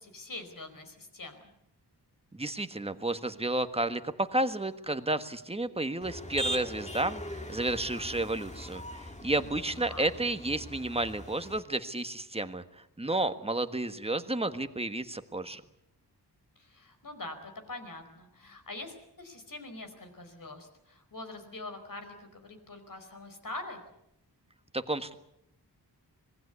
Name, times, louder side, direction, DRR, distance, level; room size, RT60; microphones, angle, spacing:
voice 1, 0.0-1.4 9.6-10.1 16.6-23.8, left 2 dB, 55° left, 7 dB, 4.9 m, -44 dB
voice 2, 2.3-15.6 24.7-25.2, right 2 dB, 15° right, 9 dB, 1.5 m, -32 dB
Motor vehicle (road), 6.0-11.6, equal, 15° left, 2.0 m, -40 dB
26.0 x 19.5 x 8.2 m, 0.78 s
wide cardioid pair, 90°, 40 cm